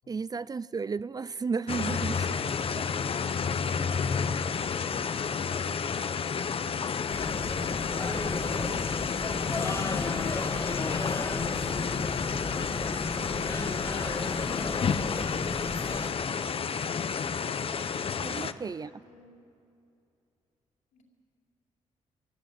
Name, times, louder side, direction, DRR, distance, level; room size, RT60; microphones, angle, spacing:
voice 1, 0.1-2.2 2.8-2.9 18.2-18.9, right 5 dB, 30° right, 0.5 m, -33 dB
sound 1, 1.7-18.5, left 6 dB, 45° left, 0.9 m, -31 dB
voice 2, 1.8-5.6 18.2-19.4 20.9-21.0, left 3 dB, 80° left, 4.8 m, -50 dB
sound 2, 7.1-16.1, left 2 dB, 25° left, 2.0 m, -34 dB
24.5 x 18.0 x 8.9 m
cardioid pair, 80°, 13 cm